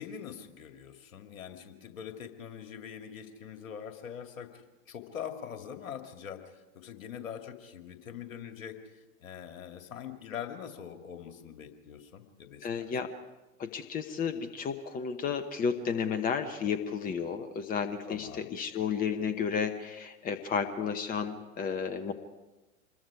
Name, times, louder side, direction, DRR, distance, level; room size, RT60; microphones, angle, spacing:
voice 1, 0.0-4.6 4.9-8.8 9.2-12.9 18.1-18.5, left 8 dB, 65° left, 6 dB, 2.3 m, -43 dB
voice 2, 12.6-13.1 13.6-22.1, left 6 dB, 20° left, 8 dB, 1.1 m, -32 dB
26.0 x 21.5 x 4.9 m, 1.1 s
figure-of-eight pair, 95°, 42 cm